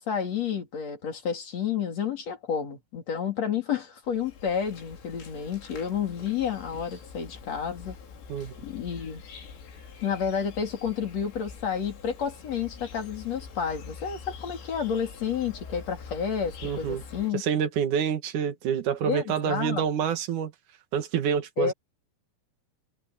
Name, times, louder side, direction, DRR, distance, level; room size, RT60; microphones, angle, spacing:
voice 1, 0.0-7.9 8.6-9.2 10.0-17.4 19.0-19.8 21.6-21.7, left 7 dB, 40° left, 3.3 m, -30 dB
Insect, 4.1-17.3, left 5 dB, 85° left, 6.7 m, -45 dB
voice 2, 16.6-17.0 17.3-20.5 20.9-21.7, right 8 dB, 60° right, 2.2 m, -27 dB
omnidirectional pair, 5.6 m